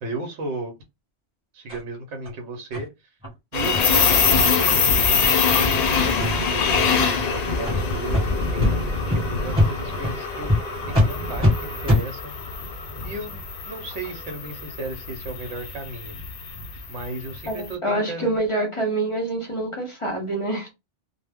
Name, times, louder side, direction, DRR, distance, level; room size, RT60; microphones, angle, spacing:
voice 1, 0.0-0.7 1.5-2.9 3.5-10.6 10.8-12.3 13.0-13.4 13.7-16.1 16.9-18.3, right 2 dB, 75° right, 0.9 m, -35 dB
sound 1, 1.7-1.8 2.2-2.3 2.7-2.8 3.2-3.3 3.7-3.8 4.2-4.3 4.7-4.8 5.2-5.3 5.7-5.8 6.2-6.5 7.1-7.2 7.6-7.8 8.1-8.2 8.6-8.7 9.1-9.2 9.5-9.7 10.0-10.1 10.5-10.6 10.9-11.1 11.4-11.5 11.8-12.0, left 1 dB, 5° right, 1.1 m, -21 dB
sound 2, 3.5-17.6, left 5 dB, 65° left, 0.4 m, -24 dB
sound 3, 6.4-11.9, right 4 dB, 45° right, 0.9 m, -39 dB
voice 2, 17.5-20.7, right 2 dB, 30° left, 0.7 m, -26 dB
2.1 x 2.1 x 3.4 m
omnidirectional pair, 1.2 m